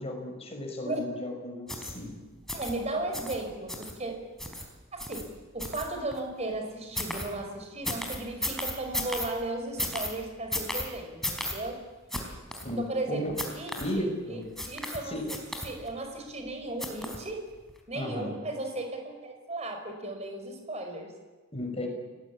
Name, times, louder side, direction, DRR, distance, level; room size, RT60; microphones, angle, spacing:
voice 1, 0.0-2.1 12.6-12.8 13.1-13.3 13.8-14.4 15.1-15.2 17.9-18.3 21.5-21.9, left 1 dB, 30° left, 3 dB, 5.8 m, -34 dB
sound 1, 1.7-1.9 2.5-2.7 3.1-3.4 3.7-3.9 4.4-4.6 5.0-5.2 5.6-6.2 6.9-7.2 7.8-9.3 9.8-10.1 10.5-10.8 11.2-11.5 12.1-12.2 12.5-12.6 13.4-13.8 14.6-15.0 15.3-15.9 16.8-17.2 17.7-17.8, left 1 dB, ahead, 4.3 m, -33 dB
voice 2, 2.5-4.2 4.9-11.8 12.8-15.4 15.6-17.5 17.9-21.1, right 2 dB, 30° right, 4 dB, 5.2 m, -36 dB
29.0 x 20.0 x 8.7 m, 1.3 s
head